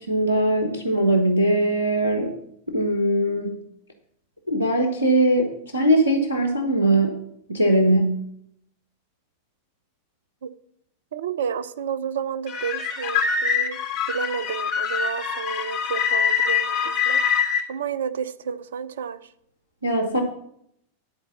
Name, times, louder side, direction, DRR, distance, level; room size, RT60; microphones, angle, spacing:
voice 1, 0.1-2.3 2.7-3.5 4.5-7.1 7.5-8.2 19.8-20.2, right 1 dB, 85° right, 4 dB, 1.2 m, -20 dB
voice 2, 11.1-13.8 14.1-17.2 17.7-19.3, right 7 dB, 60° right, 14 dB, 0.6 m, -31 dB
sound 1, 12.5-17.6, left 6 dB, 40° left, 3.4 m, -24 dB
11.0 x 4.6 x 7.3 m, 0.71 s
figure-of-eight pair, 90°, 0 cm